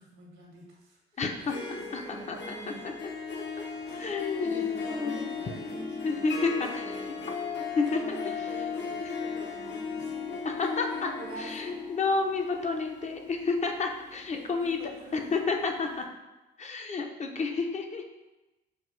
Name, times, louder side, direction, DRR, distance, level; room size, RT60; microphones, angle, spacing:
voice 1, 0.0-2.9 3.8-10.4 11.1-11.7 14.3-15.4, right 2 dB, 85° right, -2 dB, 1.3 m, -46 dB
voice 2, 1.2-1.5 2.3-2.4 4.0-5.2 6.0-6.8 7.8-8.2 9.0-9.1 10.4-11.1 11.4-14.8 15.1-16.0 16.6-18.0, left 4 dB, 35° left, 3 dB, 0.5 m, -30 dB
Harp, 1.3-15.2, left 5 dB, 65° left, 0.8 m, -37 dB
5.8 x 2.3 x 3.1 m, 1.0 s
cardioid pair, 90°, 20 cm